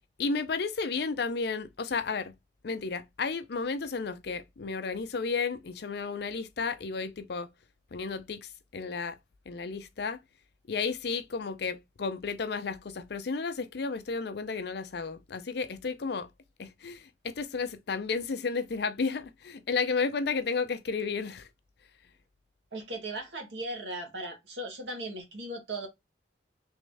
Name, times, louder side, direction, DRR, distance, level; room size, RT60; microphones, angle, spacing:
voice 1, 0.2-2.3 2.6-7.5 7.9-9.2 9.5-10.2 10.7-16.3 16.6-21.5, left 4 dB, 60° left, 0.5 m, -32 dB
voice 2, 22.7-25.9, right 1 dB, 85° right, 1.6 m, -37 dB
3.5 x 3.1 x 3.4 m
head